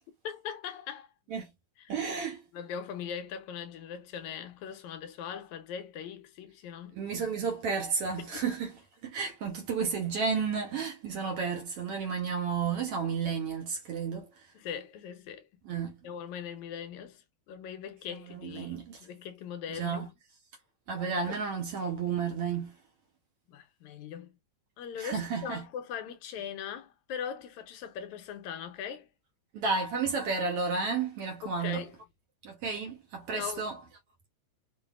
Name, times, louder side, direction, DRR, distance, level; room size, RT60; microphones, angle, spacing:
voice 1, 0.2-1.1 1.8-1.9 2.5-7.0 8.2-8.3 14.5-15.5 16.0-20.1 21.3-21.4 23.5-24.4 24.8-29.1 31.4-32.0 33.3-33.6, left 8 dB, 80° left, 2.1 m, -40 dB
voice 2, 1.9-2.4 6.9-14.5 15.6-16.0 18.3-19.0 19.7-20.1 20.9-22.7 25.0-25.7 29.5-31.9 32.4-33.8, right 5 dB, 65° right, 1.5 m, -32 dB
5.8 x 2.6 x 2.4 m
omnidirectional pair, 3.4 m